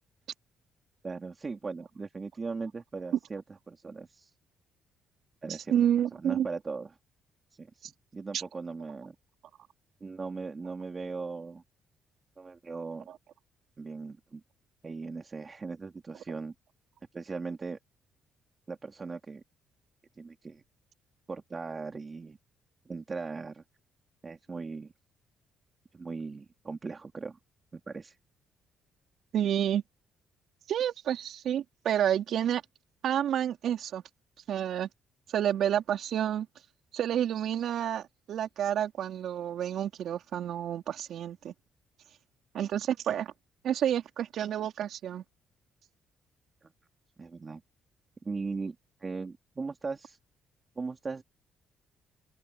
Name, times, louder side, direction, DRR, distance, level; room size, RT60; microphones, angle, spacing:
voice 1, 1.0-4.3 5.4-5.7 6.2-6.9 7.5-7.8 8.1-9.1 10.0-11.6 12.4-13.1 13.8-14.4 14.8-16.5 17.1-17.8 18.7-19.4 20.2-20.6 21.3-22.4 22.9-23.6 24.2-24.9 25.9-27.4 27.7-28.2 46.6-46.7 47.2-47.6 48.2-48.8 49.0-50.2 50.8-51.2, right 4 dB, 30° right, 3.9 m, -38 dB
voice 2, 5.5-6.5 8.3-8.4 29.3-29.8 30.7-32.6 33.0-34.0 34.5-34.9 35.3-36.5 36.9-41.5 42.5-43.3 43.6-45.2, right 10 dB, 70° right, 4.0 m, -29 dB
open air
cardioid pair, 85°, 0 cm